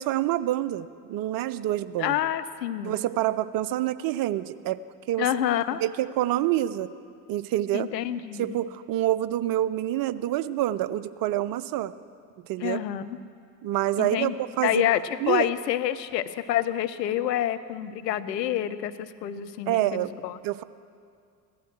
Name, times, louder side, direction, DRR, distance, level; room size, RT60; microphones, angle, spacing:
voice 1, 0.0-2.2 2.8-5.3 5.8-6.9 7.3-7.9 8.4-11.9 12.5-12.8 13.6-14.9 15.2-15.5 19.7-20.1 20.4-20.6, right 14 dB, 45° right, 16 dB, 0.6 m, -27 dB
voice 2, 2.0-3.0 5.2-5.8 7.7-8.6 12.6-13.2 14.0-14.3 14.6-20.4, left 11 dB, 80° left, 11 dB, 0.7 m, -28 dB
16.0 x 12.0 x 6.1 m, 2.3 s
figure-of-eight pair, 60°, 50 cm